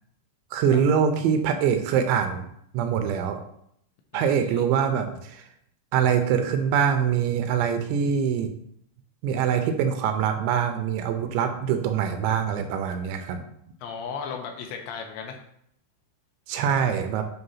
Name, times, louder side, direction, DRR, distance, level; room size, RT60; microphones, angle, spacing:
voice 1, 0.5-2.4 2.7-3.4 4.1-5.4 5.9-8.5 9.2-13.4 16.5-17.2, right 7 dB, 80° right, 7 dB, 2.8 m, -24 dB
voice 2, 4.1-4.6 13.8-15.4, left 6 dB, 80° left, 2 dB, 3.1 m, -36 dB
9.0 x 3.1 x 5.5 m, 0.72 s
omnidirectional pair, 5.3 m